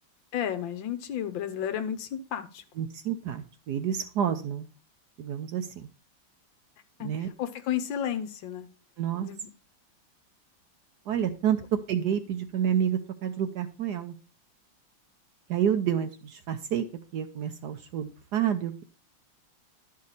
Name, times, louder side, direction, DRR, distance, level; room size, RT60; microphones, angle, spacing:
voice 1, 0.3-2.6 7.0-8.7 9.2-9.5, left 9 dB, 70° left, 9 dB, 1.5 m, -32 dB
voice 2, 2.8-4.7 5.2-5.9 7.0-7.3 9.0-9.3 11.1-11.6 11.9-14.1 15.5-16.8 17.1-18.8, right 9 dB, 65° right, 8 dB, 1.1 m, -29 dB
11.5 x 5.3 x 4.0 m, 0.33 s
omnidirectional pair, 2.2 m